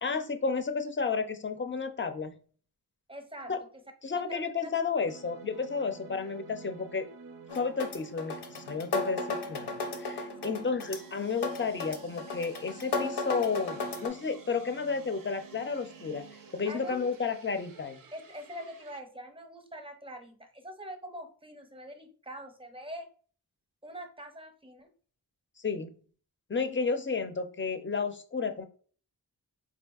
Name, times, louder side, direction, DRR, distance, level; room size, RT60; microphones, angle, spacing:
voice 1, 0.0-2.3 3.5-3.6 4.0-7.1 7.5-9.7 10.0-16.2 16.5-18.0 25.6-25.9 26.5-28.6, left 5 dB, 30° left, 8 dB, 0.5 m, -32 dB
voice 2, 3.1-3.5 4.1-4.7 10.4-10.7 16.7-17.1 18.1-23.1 23.8-24.9, equal, 15° right, 5 dB, 0.6 m, -44 dB
sound 1, 5.0-19.0, right 6 dB, 55° right, 0.4 m, -52 dB
sound 2, 7.5-14.1, left 3 dB, 70° left, 0.7 m, -35 dB
4.0 x 2.6 x 2.3 m, 0.43 s
wide cardioid pair, 50°, 41 cm